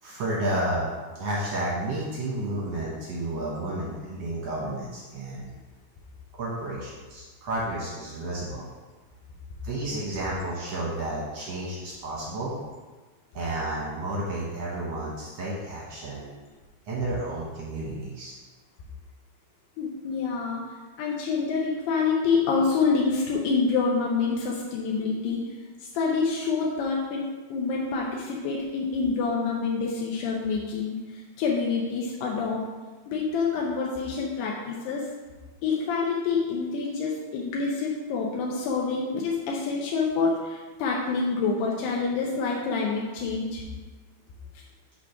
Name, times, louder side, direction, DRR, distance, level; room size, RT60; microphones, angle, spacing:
voice 1, 0.0-0.9 1.1-5.5 6.4-8.7 9.6-12.5 13.3-16.3 16.9-18.3, right 1 dB, 70° right, -5 dB, 1.6 m, -31 dB
voice 2, 19.8-20.6 21.0-25.4 25.9-32.6 33.1-35.1 35.6-43.6, left 4 dB, 80° left, -3 dB, 2.9 m, -27 dB
8.5 x 3.6 x 5.8 m, 1.3 s
omnidirectional pair, 4.7 m